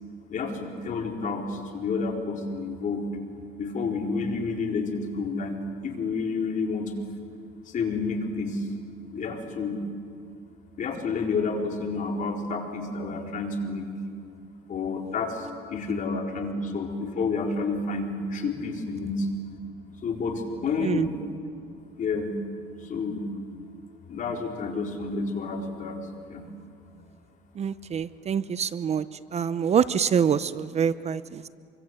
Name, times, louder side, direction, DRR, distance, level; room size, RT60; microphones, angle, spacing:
voice 1, 0.3-3.1 3.6-6.9 7.7-8.7 9.1-9.8 10.8-13.9 14.7-19.3 20.0-21.2 22.0-22.4 22.8-23.3 24.1-26.0 26.3-26.4, left 4 dB, 50° left, 1 dB, 4.3 m, -30 dB
voice 2, 27.6-29.1 29.3-31.5, right 7 dB, 40° right, 15 dB, 0.7 m, -25 dB
27.5 x 24.0 x 7.9 m, 2.4 s
cardioid pair, 110°, 17 cm